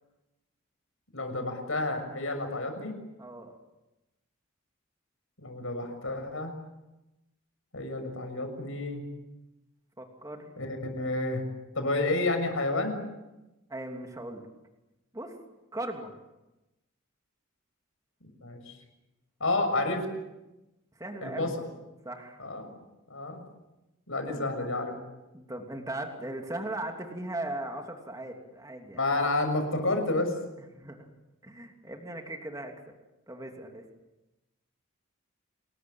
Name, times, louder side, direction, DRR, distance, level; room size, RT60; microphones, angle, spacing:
voice 1, 1.1-3.0 5.4-6.5 7.7-9.0 10.6-11.4 11.7-13.0 18.4-18.7 19.4-20.0 21.2-21.5 22.4-22.8 23.1-23.4 24.1-24.9 28.9-30.3, left 2 dB, 65° left, 6 dB, 6.6 m, -30 dB
voice 2, 3.2-3.5 10.0-10.5 13.7-14.4 15.1-15.4 15.7-16.1 21.0-21.6 22.0-22.4 24.3-24.5 25.3-29.1 30.7-31.1 31.4-32.7 33.3-33.8, right 1 dB, 15° right, 3 dB, 3.0 m, -38 dB
28.5 x 21.0 x 8.8 m, 0.99 s
head